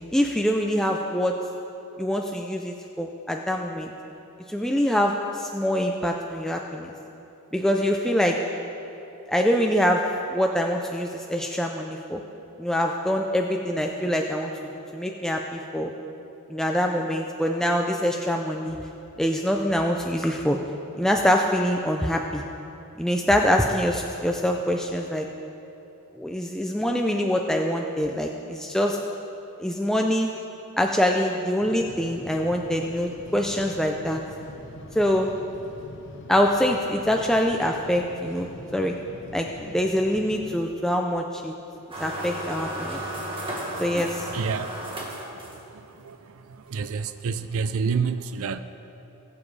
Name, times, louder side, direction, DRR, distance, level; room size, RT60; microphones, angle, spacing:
voice 1, 0.1-1.3 2.0-3.9 4.5-6.9 7.5-8.4 9.3-10.0 10.3-12.2 12.6-14.5 14.9-15.9 16.5-18.8 19.2-20.6 21.0-22.4 23.0-25.3 26.2-29.0 29.6-30.3 30.8-34.2 35.0-35.3 36.3-38.9 39.3-41.5 42.0-43.0 43.8-44.3, equal, ahead, 1 dB, 0.4 m, -24 dB
sound 1, 31.6-40.6, left 1 dB, 55° left, 0.8 m, -44 dB
sound 2, 41.9-45.9, right 1 dB, 25° right, 1.6 m, -34 dB
voice 2, 44.2-44.7 46.0-46.2 46.7-48.6, right 5 dB, 65° right, 11 dB, 0.4 m, -28 dB
20.5 x 7.3 x 3.3 m, 2.9 s
head